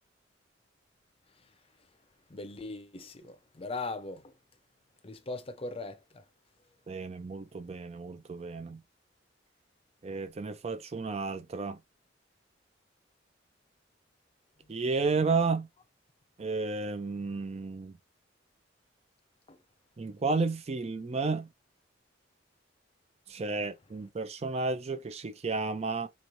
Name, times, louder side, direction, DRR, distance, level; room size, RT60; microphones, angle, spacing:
voice 1, 2.3-4.2 5.0-6.2 19.5-19.6, left 3 dB, 30° left, 0.6 m, -39 dB
voice 2, 6.9-8.8 10.0-11.8 14.7-15.7 16.4-18.0 20.0-21.5 23.3-26.1, right 4 dB, 35° right, 0.4 m, -32 dB
4.2 x 3.1 x 2.5 m
head